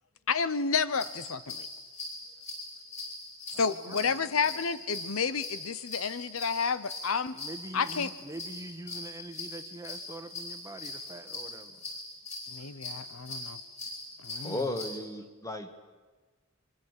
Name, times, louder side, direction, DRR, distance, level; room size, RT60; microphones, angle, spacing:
voice 1, 0.3-1.7 3.6-7.4 7.7-8.1 12.5-13.6 14.2-14.5, left 5 dB, 80° left, 15 dB, 0.9 m, -30 dB
sound 1, 0.9-14.9, left 2 dB, 30° left, 7.8 m, -41 dB
voice 2, 3.5-4.5 7.3-11.8, right 1 dB, 15° right, 8 dB, 1.3 m, -45 dB
voice 3, 14.4-15.7, left 1 dB, 15° left, 7 dB, 1.9 m, -34 dB
24.5 x 24.5 x 8.3 m, 1.4 s
head